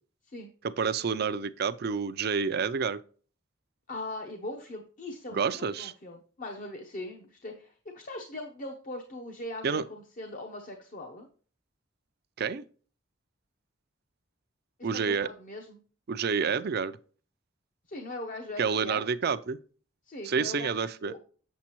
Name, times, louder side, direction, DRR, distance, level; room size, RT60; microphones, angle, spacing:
voice 1, 0.6-3.0 5.3-5.9 9.6-9.8 12.4-12.6 14.8-15.3 16.1-17.0 18.6-19.6 20.2-21.2, right 6 dB, 55° right, 0.5 m, -29 dB
voice 2, 3.9-11.3 14.8-15.8 17.9-19.1 20.1-21.2, left 2 dB, 45° left, 0.8 m, -40 dB
7.5 x 7.3 x 3.0 m
head